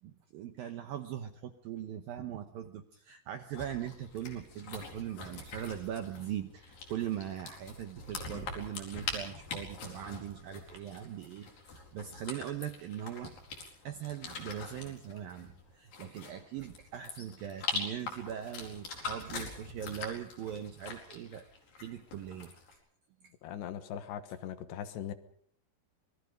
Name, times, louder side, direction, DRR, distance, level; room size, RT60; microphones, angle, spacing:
voice 1, 0.0-13.3 13.8-21.4 21.8-22.8 23.2-23.3, right 10 dB, 80° right, 8 dB, 2.1 m, -40 dB
sound 1, 3.5-22.7, left 4 dB, 45° left, 5.8 m, -43 dB
voice 2, 23.4-25.1, left 9 dB, 70° left, 10 dB, 3.2 m, -40 dB
27.0 x 21.5 x 5.3 m, 0.63 s
omnidirectional pair, 5.5 m